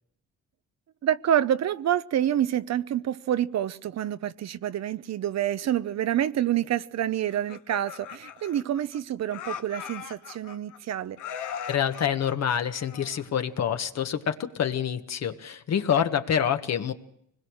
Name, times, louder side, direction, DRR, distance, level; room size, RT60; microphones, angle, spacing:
voice 1, 1.0-11.2, right 11 dB, 60° right, 0.9 m, -27 dB
Laughter, 7.3-9.0 9.3-10.8 11.2-13.4, left 8 dB, 80° left, 1.4 m, -39 dB
voice 2, 11.7-16.9, left 8 dB, 60° left, 1.6 m, -27 dB
24.5 x 21.0 x 6.5 m
cardioid pair, 90°, 30 cm